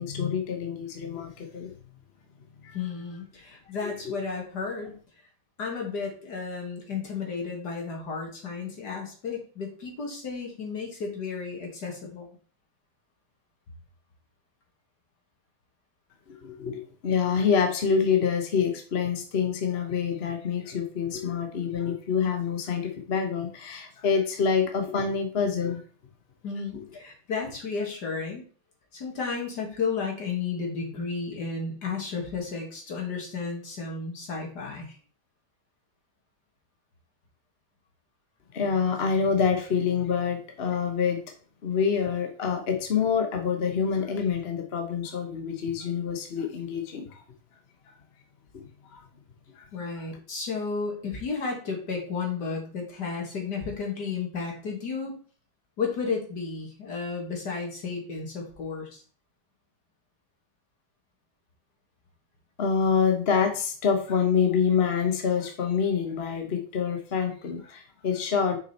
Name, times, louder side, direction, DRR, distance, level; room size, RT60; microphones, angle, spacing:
voice 1, 0.0-1.7 2.6-2.8 16.3-25.8 38.5-41.2 41.6-47.2 48.5-48.6 48.9-49.0 49.6-49.7 62.6-68.6, left 6 dB, 40° left, 4 dB, 1.2 m, -26 dB
voice 2, 2.7-5.0 5.6-12.3 26.4-28.5 28.9-35.0 49.7-55.1 55.8-59.0, left 5 dB, 70° left, 1 dB, 2.5 m, -33 dB
6.4 x 5.4 x 4.3 m, 0.41 s
omnidirectional pair, 1.8 m